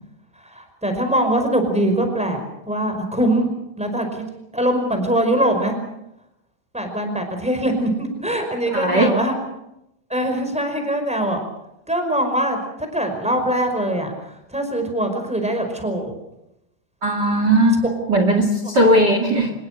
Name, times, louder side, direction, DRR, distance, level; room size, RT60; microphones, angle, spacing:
voice 1, 0.4-2.4 2.7-3.5 3.8-4.2 4.5-5.8 6.7-9.4 10.1-11.4 11.9-14.1 14.5-16.1, right 1 dB, ahead, 5 dB, 4.4 m, -22 dB
voice 2, 8.7-9.1 17.0-19.5, right 1 dB, 40° right, 6 dB, 1.5 m, -18 dB
25.5 x 21.0 x 6.6 m, 0.86 s
omnidirectional pair, 5.3 m